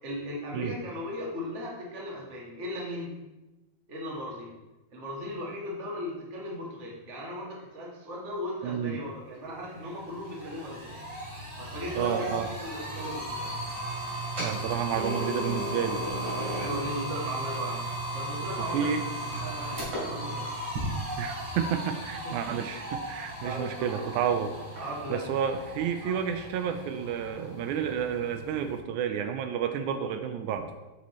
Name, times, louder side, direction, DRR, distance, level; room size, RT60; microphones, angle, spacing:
voice 1, 0.0-3.2 3.9-4.5 4.9-11.0 11.6-13.5 16.3-17.9 18.1-19.0 19.4-20.5 22.2-22.4 23.4-24.0 24.8-25.3 26.0-26.2, equal, 30° right, -3 dB, 1.4 m, -37 dB
voice 2, 8.6-9.0 12.0-12.5 14.4-16.0 18.7-19.0 21.2-24.5 25.1-30.7, right 8 dB, 85° right, 7 dB, 2.0 m, -30 dB
sound 1, 9.3-9.4 9.8-28.8, right 1 dB, 50° right, 3.4 m, -36 dB
8.6 x 7.2 x 3.1 m, 1.1 s
omnidirectional pair, 3.4 m